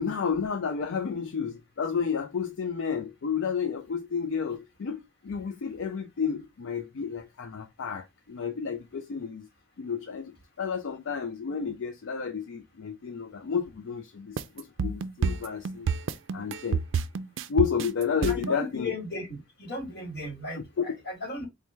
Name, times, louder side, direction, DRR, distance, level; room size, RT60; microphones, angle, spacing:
voice 1, 0.0-9.5 9.8-15.9 16.3-16.8 17.5-18.9 20.5-20.8, left 6 dB, 75° left, 0.4 m, -31 dB
sound 1, 14.4-18.6, right 5 dB, 65° right, 0.4 m, -29 dB
voice 2, 18.3-21.5, left 1 dB, 55° left, 1.4 m, -36 dB
4.3 x 2.2 x 3.2 m
head